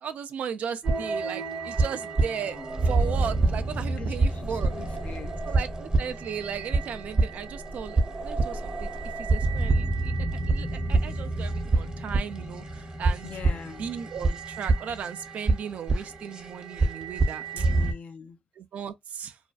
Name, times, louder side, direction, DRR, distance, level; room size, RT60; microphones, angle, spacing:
voice 1, 0.0-4.7 5.4-8.9 9.2-10.1 10.5-13.3 13.6-17.7 18.6-19.4, right 7 dB, 70° right, 0.4 m, -36 dB
sound 1, 0.8-17.9, right 3 dB, 35° right, 0.8 m, -27 dB
voice 2, 4.0-5.3 13.2-13.9 17.5-18.4, left 6 dB, 60° left, 0.4 m, -43 dB
2.4 x 2.2 x 2.4 m
supercardioid pair, 60°, 3 cm